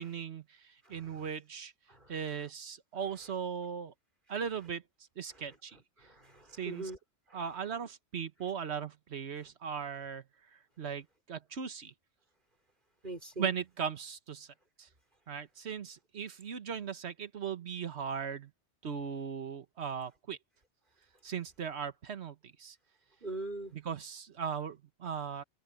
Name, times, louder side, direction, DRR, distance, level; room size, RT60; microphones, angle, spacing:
voice 1, 0.0-1.7 2.1-3.9 4.3-4.8 5.2-5.8 6.6-6.8 7.3-10.2 10.8-11.9 13.4-14.5 14.8-14.9 15.3-18.5 18.8-20.4 21.2-22.8 23.7-25.4, right 7 dB, 65° right, 1.4 m, -38 dB
voice 2, 0.8-1.3 1.9-2.2 5.3-5.6 6.0-7.0 7.3-7.4 9.4-9.5 13.0-13.5 23.2-23.7, right 2 dB, 45° right, 5.0 m, -43 dB
open air
omnidirectional pair, 1.2 m